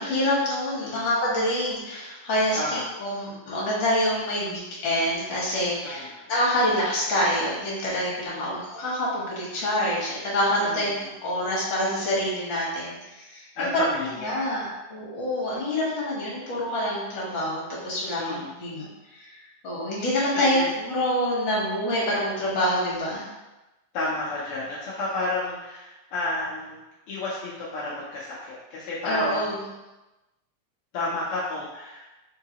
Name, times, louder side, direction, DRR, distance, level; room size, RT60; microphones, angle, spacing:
voice 1, 0.0-13.8 14.2-18.9 19.1-19.4 19.6-23.3 29.1-29.6, left 1 dB, 50° left, -5 dB, 1.7 m, -26 dB
voice 2, 2.5-3.0 5.8-6.2 8.3-8.5 10.6-11.0 13.6-14.5 18.2-18.5 20.3-20.7 23.9-26.8 27.1-29.6 30.9-32.0, left 2 dB, 75° left, -7 dB, 1.3 m, -31 dB
4.6 x 3.8 x 2.9 m, 1.0 s
omnidirectional pair, 3.4 m